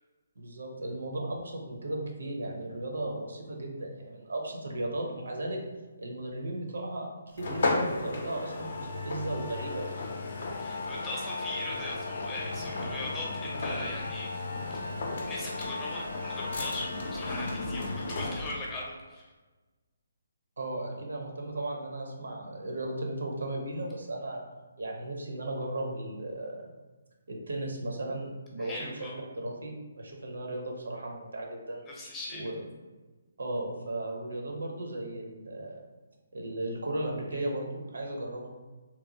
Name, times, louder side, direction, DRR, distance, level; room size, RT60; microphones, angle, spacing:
voice 1, 0.4-5.6 6.0-7.1 7.3-10.0 20.6-24.4 24.8-26.7 27.3-31.8 32.3-32.6 33.4-35.8 36.3-38.5, right 1 dB, 80° right, 0 dB, 0.6 m, -36 dB
sound 1, 7.4-18.7, left 2 dB, 60° left, 0.5 m, -34 dB
voice 2, 10.6-14.4 14.7-19.3 28.6-29.1 31.9-32.4, left 2 dB, 15° left, -4 dB, 0.6 m, -39 dB
2.9 x 2.2 x 2.6 m, 1.2 s
figure-of-eight pair, 145°, 0 cm